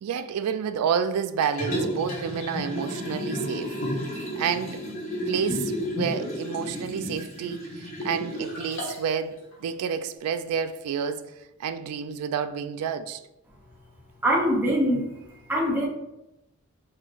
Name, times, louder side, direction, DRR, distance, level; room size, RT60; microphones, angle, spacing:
voice 1, 0.0-4.9 5.3-11.3 11.6-13.2, right 7 dB, 90° right, 0.3 m, -30 dB
Liquid, 1.4-9.1 9.5-9.6, equal, 65° left, 1.3 m, -32 dB
voice 2, 14.2-15.0 15.5-15.9, equal, 10° right, 0.8 m, -22 dB
3.8 x 3.0 x 2.4 m
head